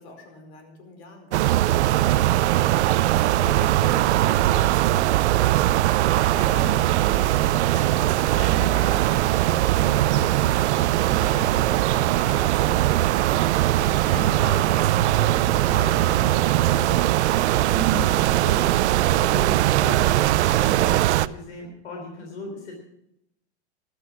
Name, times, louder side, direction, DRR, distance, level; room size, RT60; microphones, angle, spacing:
voice 1, 0.0-2.8 3.0-6.3 6.6-6.7 12.1-12.4, left 2 dB, 65° left, 5 dB, 4.9 m, -43 dB
sound 1, 1.3-21.3, right 14 dB, 80° right, 0.6 m, -20 dB
voice 2, 6.2-10.3 10.6-14.9 15.2-22.7, equal, 85° left, 1 dB, 3.8 m, -37 dB
14.0 x 12.5 x 6.0 m, 0.80 s
supercardioid pair, 135°, 34 cm